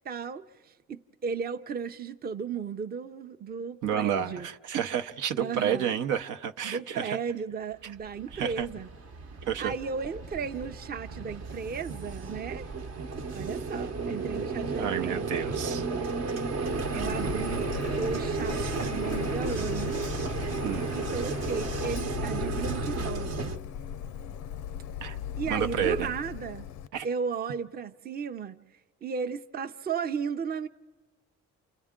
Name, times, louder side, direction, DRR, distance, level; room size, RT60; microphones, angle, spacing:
voice 1, 0.0-4.5 5.3-6.0 6.6-8.9 9.6-12.7 13.3-15.4 16.9-17.7 18.0-20.0 20.9-23.6 25.4-26.7 27.0-28.6 29.0-30.7, right 6 dB, 30° right, 0.6 m, -35 dB
voice 2, 3.8-7.2 8.3-8.7 9.5-9.7 14.8-15.8 20.6-20.9 25.0-25.2 25.5-26.1 26.9-27.1, right 9 dB, 80° right, 0.8 m, -30 dB
Vehicle, 8.0-23.6, right 4 dB, 60° right, 1.0 m, -33 dB
Printer, 16.5-26.9, left 9 dB, 80° left, 0.6 m, -37 dB
29.5 x 29.0 x 3.7 m
cardioid pair, 90°, 30 cm